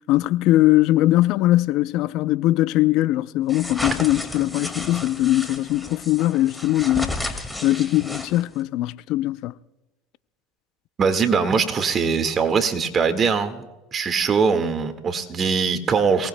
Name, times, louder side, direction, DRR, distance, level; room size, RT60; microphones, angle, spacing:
voice 1, 0.1-7.2 7.6-9.5, left 16 dB, 60° left, 0.5 m, -20 dB
sound 1, 3.5-8.6, left 1 dB, 5° left, 2.0 m, -32 dB
voice 2, 11.0-13.6 13.9-16.3, right 5 dB, 35° right, 1.7 m, -21 dB
28.0 x 18.5 x 2.2 m
supercardioid pair, 105°, 0 cm